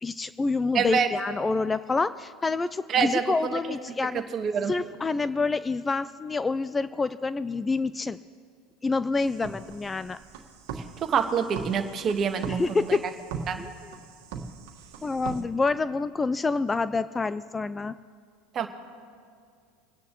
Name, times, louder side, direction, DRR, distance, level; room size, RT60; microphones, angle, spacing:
voice 1, 0.0-4.2 4.7-8.2 8.8-10.2 12.5-13.1 13.6-13.7 15.0-17.9, left 3 dB, 20° left, 15 dB, 0.3 m, -27 dB
voice 2, 0.7-1.1 2.9-3.2 3.5-3.6 4.1-4.7 11.0-13.0 13.5-13.6 18.5-18.7, right 6 dB, 40° right, 6 dB, 1.4 m, -26 dB
sound 1, 9.2-15.4, right 5 dB, 70° right, 1.5 m, -40 dB
27.5 x 9.6 x 3.0 m, 2.2 s
hypercardioid pair, 100°, 0 cm